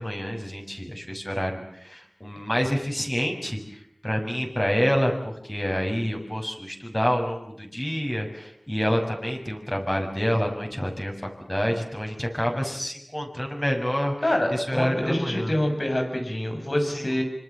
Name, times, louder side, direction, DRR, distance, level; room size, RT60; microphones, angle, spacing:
voice 1, 0.0-15.5 16.9-17.1, equal, 15° left, 2 dB, 7.0 m, -28 dB
voice 2, 14.2-17.2, left 1 dB, 55° left, 4 dB, 7.6 m, -26 dB
26.5 x 26.0 x 7.5 m, 0.71 s
wide cardioid pair, 45°, 0 cm